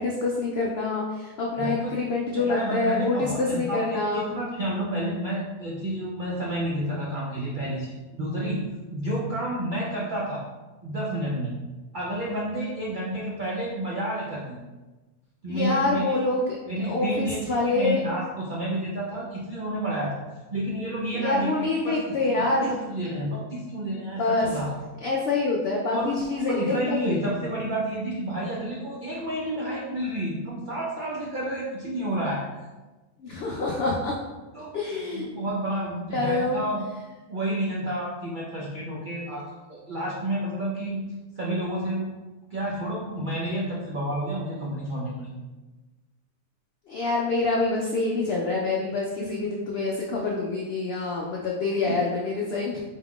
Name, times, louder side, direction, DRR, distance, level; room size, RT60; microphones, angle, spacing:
voice 1, 0.0-4.3 15.5-16.6 16.9-18.0 21.1-22.6 24.2-24.5 25.0-27.2 33.2-34.1 34.7-35.3 36.1-36.6 46.9-52.8, left 3 dB, 85° left, -2 dB, 0.5 m, -26 dB
voice 2, 1.5-1.9 2.4-8.6 8.9-10.4 10.8-11.5 11.9-14.6 15.4-16.1 16.7-20.2 20.5-24.7 25.9-32.4 34.5-34.8 35.1-36.9 37.3-41.1 41.4-42.1 42.5-45.3 51.9-52.0, right 1 dB, 65° right, -5 dB, 0.4 m, -30 dB
4.4 x 2.3 x 3.6 m, 1.2 s
omnidirectional pair, 1.7 m